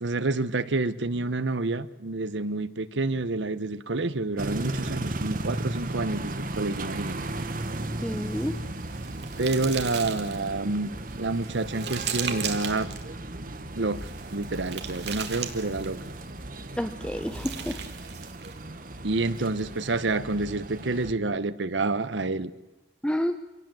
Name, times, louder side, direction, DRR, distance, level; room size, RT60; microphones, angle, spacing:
voice 1, 0.0-7.2 9.4-10.9 11.1-12.9 13.8-16.0 19.0-22.5, right 3 dB, 85° right, 14 dB, 1.0 m, -28 dB
sound 1, 4.4-21.1, right 2 dB, 50° right, 1.4 m, -36 dB
voice 2, 8.0-8.6 16.8-17.8 23.0-23.4, equal, 5° left, 9 dB, 0.7 m, -29 dB
sound 2, 8.2-10.5 11.1-13.0 13.9-16.1 17.0-18.6, right 8 dB, 65° right, 2.3 m, -37 dB
25.5 x 17.5 x 7.7 m, 1.1 s
head